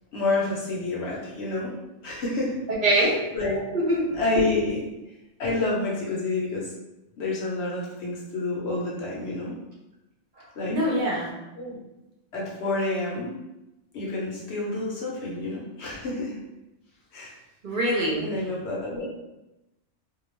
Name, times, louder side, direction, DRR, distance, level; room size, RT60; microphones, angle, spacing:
voice 1, 0.1-1.7 2.0-2.6 3.0-3.7 4.1-4.8 5.4-6.7 7.2-9.5 10.6-10.8 11.6-11.7 12.3-13.3 13.9-16.4 17.1-17.3 18.2-19.0, left 2 dB, 65° left, -4 dB, 0.9 m, -28 dB
voice 2, 2.7-3.2 3.7-4.0 10.7-11.3 17.6-18.3, right 1 dB, 50° right, -3 dB, 0.6 m, -23 dB
2.3 x 2.3 x 3.1 m, 0.96 s
omnidirectional pair, 1.3 m